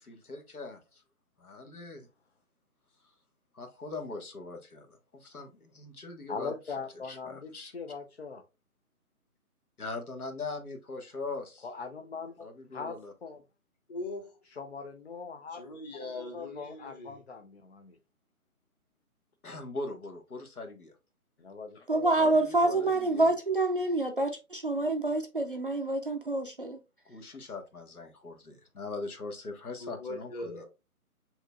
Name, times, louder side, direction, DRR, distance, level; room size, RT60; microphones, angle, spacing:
voice 1, 0.1-1.0 1.4-2.1 3.5-6.8 7.0-7.7 9.8-11.7 12.4-13.1 19.4-20.9 22.2-23.3 27.0-30.6, left 3 dB, 70° left, 1.6 m, -41 dB
voice 2, 6.3-8.4 11.6-12.5 12.7-13.4 14.6-15.6 16.0-18.0 21.4-22.1, left 5 dB, 45° left, 0.6 m, -41 dB
voice 3, 13.9-14.4 15.5-17.2 29.8-30.7, left 2 dB, 30° left, 1.4 m, -40 dB
voice 4, 21.9-26.8, right 2 dB, 40° right, 0.5 m, -27 dB
7.8 x 2.9 x 2.3 m
figure-of-eight pair, 150°, 45 cm